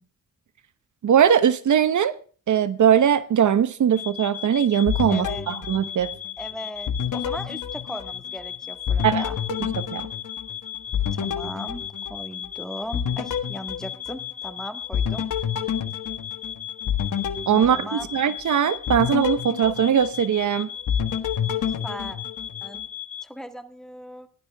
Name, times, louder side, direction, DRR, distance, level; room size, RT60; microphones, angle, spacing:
voice 1, 1.0-2.1 2.5-6.1 9.0-9.2 9.8-10.1 17.5-20.7, right 8 dB, 70° right, 1.0 m, -20 dB
sound 1, 3.9-23.2, left 10 dB, 45° left, 1.2 m, -36 dB
sound 2, 4.9-6.5 6.9-8.5 8.9-12.5 12.9-14.5 14.9-18.4 18.9-20.5 20.9-22.8, left 8 dB, 75° left, 1.5 m, -29 dB
voice 2, 5.1-5.5 6.4-9.4 11.1-15.2 17.5-18.1 21.4-22.2 22.6-22.8 23.2-24.3, equal, ahead, 1.6 m, -38 dB
16.0 x 11.5 x 3.5 m
cardioid pair, 85°, 31 cm